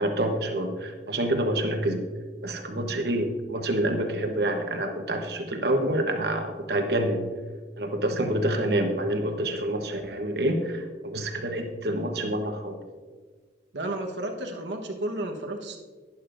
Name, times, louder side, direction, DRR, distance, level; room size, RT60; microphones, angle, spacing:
voice 1, 0.0-2.0 2.4-7.2 7.8-12.8, right 1 dB, 60° right, 5 dB, 1.1 m, -27 dB
voice 2, 13.7-15.8, right 1 dB, 90° right, 2 dB, 1.2 m, -32 dB
11.5 x 10.5 x 2.6 m, 1.4 s
head